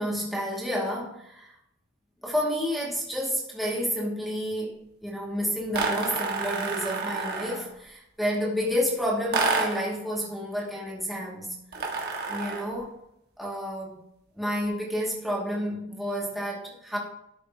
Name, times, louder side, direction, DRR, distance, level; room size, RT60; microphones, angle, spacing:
voice 1, 0.0-1.5 2.2-11.8 12.2-13.0 13.4-14.0 14.4-17.0, equal, ahead, -5 dB, 2.3 m, -30 dB
sound 1, 5.7-7.7 9.3-9.9 11.7-12.8, right 4 dB, 50° right, 1.8 m, -29 dB
12.5 x 6.8 x 2.9 m, 0.80 s
head